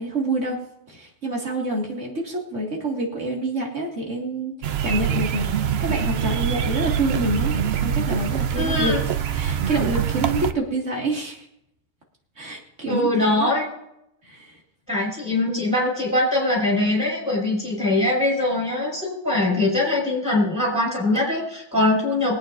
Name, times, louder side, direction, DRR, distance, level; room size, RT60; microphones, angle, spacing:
voice 1, 0.0-4.5 4.8-8.9 9.3-11.5 12.4-13.5 14.2-14.6, right 2 dB, 80° right, -1 dB, 2.4 m, -27 dB
sound 1, 4.6-10.5, right 8 dB, 65° right, 0.8 m, -24 dB
voice 2, 8.6-9.0 12.9-13.7 14.9-22.4, left 2 dB, 5° right, -3 dB, 5.2 m, -22 dB
23.5 x 8.7 x 2.6 m, 0.79 s
omnidirectional pair, 1.2 m